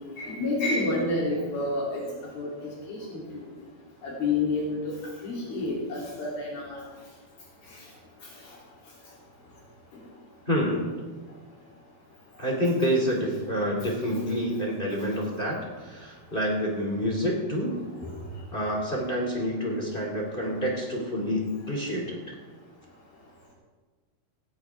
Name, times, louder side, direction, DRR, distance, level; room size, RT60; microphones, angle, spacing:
voice 1, 0.2-2.0 2.3-2.5 2.9-3.5 4.0-4.9 5.2-6.8 18.0-18.1, left 2 dB, 65° left, -5 dB, 5.2 m, -29 dB
voice 2, 10.5-10.9 12.4-17.8 18.5-22.3, equal, 15° left, -1 dB, 2.3 m, -28 dB
17.5 x 16.5 x 3.7 m, 1.4 s
omnidirectional pair, 4.5 m